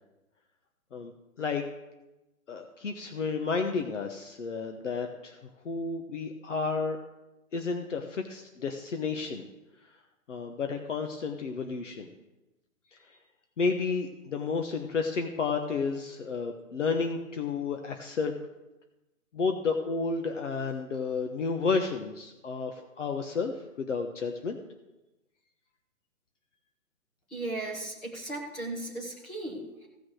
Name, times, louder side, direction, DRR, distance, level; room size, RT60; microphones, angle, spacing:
voice 1, 2.5-5.4 5.6-7.0 7.5-9.5 10.3-12.1 13.6-18.3 19.3-24.6, left 4 dB, 60° left, 5 dB, 1.4 m, -31 dB
voice 2, 27.3-29.9, right 2 dB, ahead, -4 dB, 0.5 m, -36 dB
15.5 x 6.2 x 6.4 m, 1.0 s
figure-of-eight pair, 135°, 41 cm